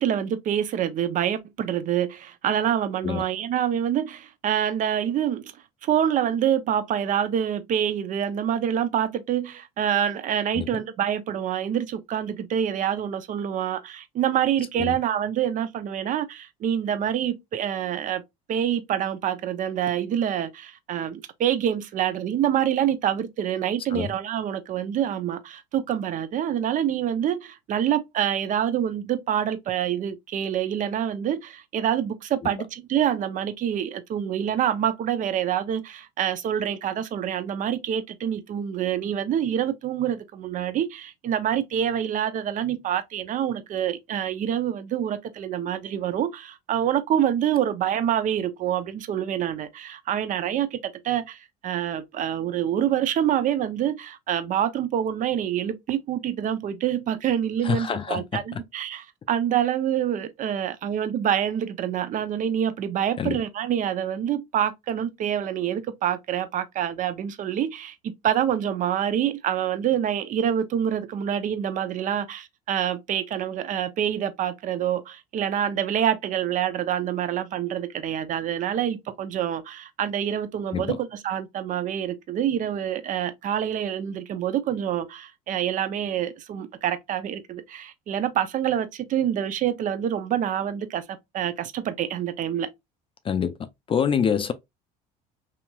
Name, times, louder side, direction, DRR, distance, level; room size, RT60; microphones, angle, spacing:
voice 1, 0.0-5.5 5.8-18.2 18.5-92.7, right 10 dB, 45° right, 0.5 m, -26 dB
voice 2, 57.6-58.6 63.2-63.4 80.7-81.0 93.2-93.5 93.9-94.5, left 7 dB, 30° left, 0.4 m, -26 dB
2.8 x 2.8 x 2.2 m
supercardioid pair, 85°, 18 cm